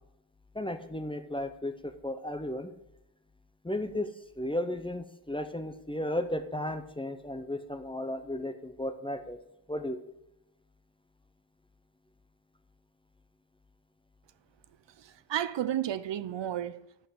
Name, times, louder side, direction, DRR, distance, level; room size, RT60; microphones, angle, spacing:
voice 1, 0.5-2.7 3.6-9.4 9.7-10.0, left 1 dB, 10° left, 0.5 m, -34 dB
voice 2, 15.0-17.1, right 11 dB, 70° right, 0.5 m, -33 dB
5.8 x 5.7 x 6.4 m
wide cardioid pair, 115°, 45 cm